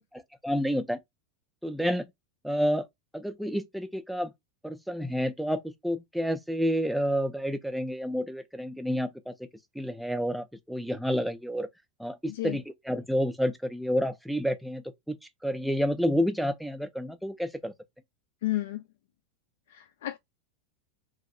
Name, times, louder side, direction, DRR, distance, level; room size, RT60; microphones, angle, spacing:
voice 1, 0.1-1.0 1.6-2.0 2.4-2.8 3.1-4.3 4.6-9.3 9.8-11.7 12.0-15.2 15.4-17.7, equal, ahead, 0.3 m, -29 dB
voice 2, 12.3-12.6 18.4-18.8 19.7-20.2, left 16 dB, 80° left, 0.4 m, -32 dB
2.9 x 2.6 x 2.5 m
supercardioid pair, 175°, 0 cm